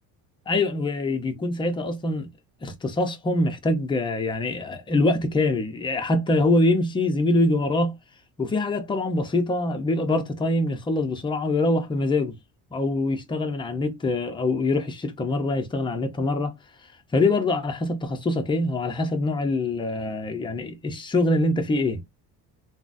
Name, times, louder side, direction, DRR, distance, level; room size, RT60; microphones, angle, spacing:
voice 1, 0.5-2.3 2.6-7.9 8.4-12.3 12.7-16.5 17.1-22.0, left 2 dB, 15° left, 0.4 m, -24 dB
3.7 x 2.1 x 2.4 m
cardioid pair, 150°, 40 cm